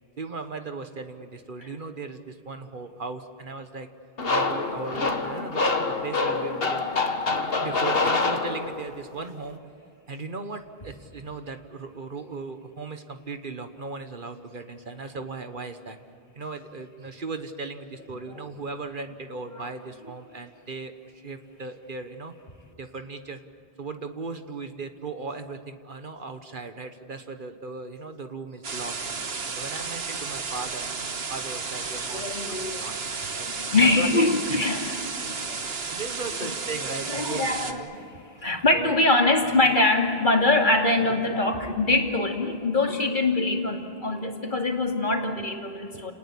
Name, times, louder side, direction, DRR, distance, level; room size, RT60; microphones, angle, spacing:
voice 1, 0.2-3.9 4.3-6.9 7.6-9.6 10.1-16.0 16.4-22.3 22.8-23.4 23.8-33.5 34.0-34.7 35.5-37.9 38.7-39.0 45.9-46.1, right 3 dB, 55° right, 8 dB, 1.4 m, -37 dB
sound 1, 4.2-9.0, left 3 dB, 65° left, 1.8 m, -26 dB
voice 2, 19.3-19.7 32.1-32.9 33.5-35.6 36.4-36.5 37.1-46.1, left 2 dB, 50° left, 2 dB, 2.7 m, -24 dB
sound 2, 28.6-37.7, right 4 dB, 75° right, 1.6 m, -33 dB
29.5 x 19.0 x 8.5 m, 2.6 s
omnidirectional pair, 1.0 m